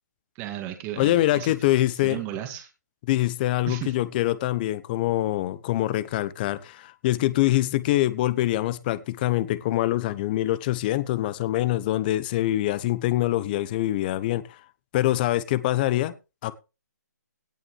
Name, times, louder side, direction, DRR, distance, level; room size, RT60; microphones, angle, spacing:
voice 1, 0.3-1.5 2.0-2.7 3.7-4.0, right 12 dB, 20° right, 5 dB, 2.2 m, -34 dB
voice 2, 1.0-2.2 3.1-14.6 14.9-16.1 16.4-16.5, left 15 dB, 30° left, 16 dB, 1.0 m, -24 dB
17.5 x 6.2 x 4.6 m, 0.30 s
hypercardioid pair, 150°, 10 cm